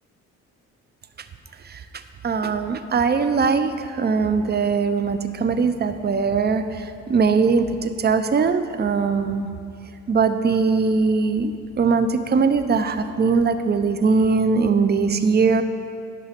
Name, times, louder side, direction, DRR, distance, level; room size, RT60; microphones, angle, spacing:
voice 1, 2.2-9.5 10.1-15.6, right 5 dB, 35° right, 10 dB, 0.6 m, -21 dB
11.0 x 6.1 x 5.2 m, 2.3 s
cardioid pair, 90°, 30 cm